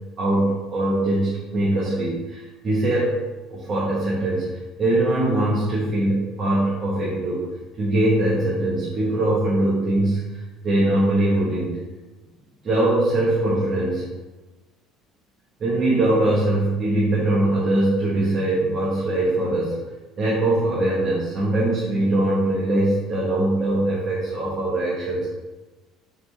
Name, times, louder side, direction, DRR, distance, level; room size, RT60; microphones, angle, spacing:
voice 1, 0.2-3.1 3.5-4.4 4.8-7.4 7.8-10.2 10.6-11.8 12.6-14.0 15.6-19.8 20.2-25.3, right 1 dB, 30° right, -7 dB, 1.3 m, -22 dB
7.0 x 4.1 x 3.4 m, 1.2 s
cardioid pair, 175°, 0 cm